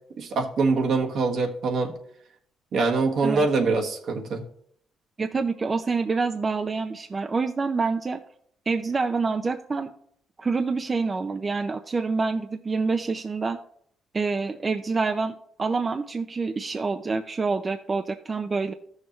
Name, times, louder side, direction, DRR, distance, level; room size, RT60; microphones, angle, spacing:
voice 1, 0.2-1.9 2.7-4.4, right 4 dB, 65° right, 2 dB, 1.5 m, -24 dB
voice 2, 5.2-8.2 8.7-9.9 10.4-13.6 14.1-18.7, right 4 dB, 30° right, 8 dB, 0.5 m, -27 dB
13.5 x 6.4 x 3.0 m, 0.66 s
cardioid pair, 90°, 0 cm